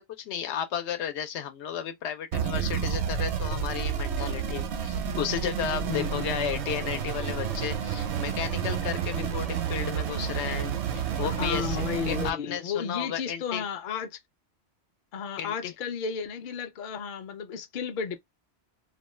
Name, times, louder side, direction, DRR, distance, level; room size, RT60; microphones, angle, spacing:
voice 1, 0.0-13.6 15.4-15.7, left 9 dB, 85° left, 0.9 m, -33 dB
sound 1, 2.3-12.3, right 8 dB, 80° right, 0.9 m, -30 dB
voice 2, 5.9-6.4 9.1-9.3 11.2-14.2 15.1-18.2, left 7 dB, 60° left, 0.6 m, -33 dB
sound 2, 5.9-12.3, right 6 dB, 50° right, 0.4 m, -42 dB
2.4 x 2.2 x 3.1 m
omnidirectional pair, 1.1 m